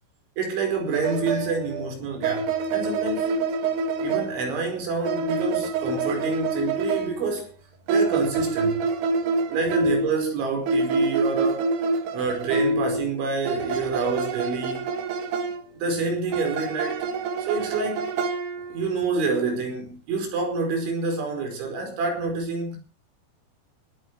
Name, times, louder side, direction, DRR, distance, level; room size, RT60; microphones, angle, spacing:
voice 1, 0.4-3.4 4.0-7.5 7.9-8.8 9.5-11.8 12.1-14.8 15.7-17.1 17.4-18.1 18.7-22.8, right 4 dB, 85° right, 7.5 m, -28 dB
sound 1, 0.9-4.6 5.1-7.4 7.9-10.2 10.7-13.1 13.5-15.7 16.3-19.0, right 3 dB, 65° right, 3.6 m, -26 dB
18.5 x 14.5 x 4.9 m
omnidirectional pair, 5.2 m